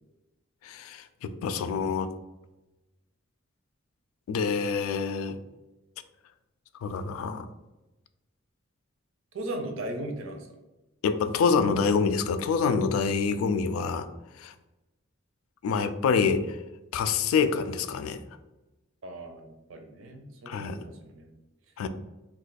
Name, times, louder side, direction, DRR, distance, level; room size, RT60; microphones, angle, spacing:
voice 1, 0.6-2.1 4.3-5.4 6.8-7.5 11.0-14.1 14.4-14.5 15.6-16.6 16.9-18.2 20.5-20.8 21.8-21.9, left 5 dB, 90° left, 11 dB, 0.3 m, -26 dB
voice 2, 9.3-10.6 19.0-21.3, right 1 dB, 70° right, 4 dB, 0.6 m, -38 dB
2.5 x 2.3 x 3.8 m, 1.1 s
head